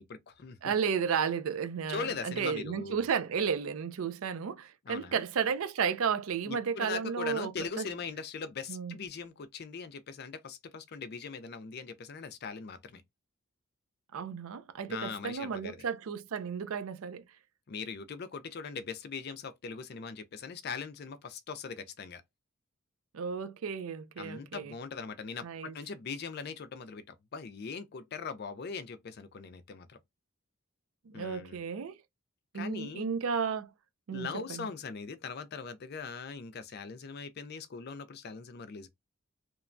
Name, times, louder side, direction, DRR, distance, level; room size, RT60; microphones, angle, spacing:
voice 1, 0.0-0.7 1.9-3.0 4.8-5.2 6.5-13.0 14.9-15.8 17.7-22.2 24.2-30.0 31.1-31.6 32.5-33.1 34.1-38.9, left 5 dB, 45° left, 0.4 m, -41 dB
voice 2, 0.6-7.5 7.8-7.9 8.7-8.9 14.1-17.2 23.1-24.7 25.4-25.7 31.1-32.0 32.5-33.7 34.1-34.7, right 6 dB, 70° right, 0.4 m, -33 dB
2.9 x 2.2 x 2.5 m
head